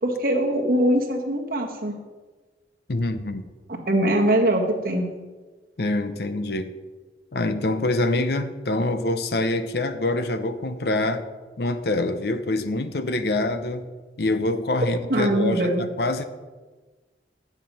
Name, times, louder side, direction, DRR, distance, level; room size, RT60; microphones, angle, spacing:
voice 1, 0.0-1.9 3.9-5.1 15.1-15.8, right 1 dB, 55° right, 1 dB, 1.6 m, -22 dB
voice 2, 2.9-3.5 5.8-6.7 7.3-11.3 11.6-13.9 14.2-16.2, left 2 dB, 65° left, 10 dB, 0.7 m, -25 dB
10.5 x 7.5 x 5.5 m, 1.3 s
head